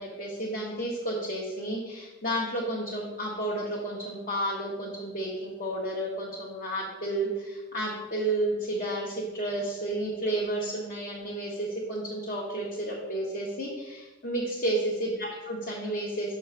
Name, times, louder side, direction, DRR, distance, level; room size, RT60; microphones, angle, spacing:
voice 1, 0.0-16.3, right 1 dB, 45° left, -4 dB, 1.0 m, -31 dB
5.8 x 3.9 x 6.1 m, 1.1 s
head